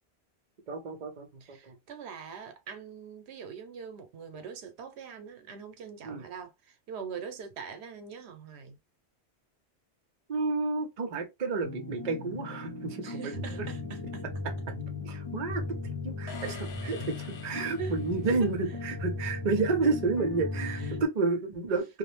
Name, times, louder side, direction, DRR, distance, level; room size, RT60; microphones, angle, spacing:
voice 1, 0.7-1.8 6.0-6.2 10.3-13.7 15.0-15.8 16.0-22.0, right 3 dB, 45° right, 0.7 m, -31 dB
voice 2, 1.4-8.8 13.0-14.2 16.4-16.5 17.8-18.0 18.4-18.5 19.8-19.9 20.7-21.0, right 6 dB, 80° right, 0.9 m, -42 dB
sound 1, 11.6-21.0, left 3 dB, 35° left, 0.7 m, -37 dB
sound 2, 16.3-18.5, left 4 dB, 75° left, 0.9 m, -46 dB
2.4 x 2.0 x 3.1 m
omnidirectional pair, 1.1 m